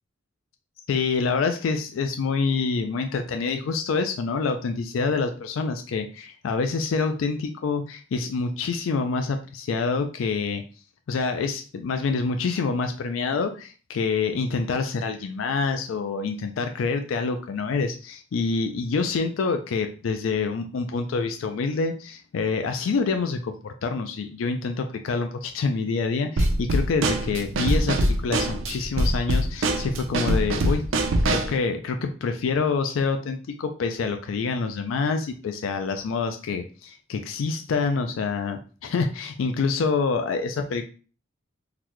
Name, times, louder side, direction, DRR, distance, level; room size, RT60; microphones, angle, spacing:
voice 1, 0.9-10.6 11.1-30.8 31.3-40.9, left 4 dB, 85° left, 6 dB, 0.4 m, -26 dB
Drum kit / Snare drum, 26.4-31.6, right 1 dB, 90° right, 0.5 m, -24 dB
3.9 x 2.1 x 3.0 m, 0.38 s
head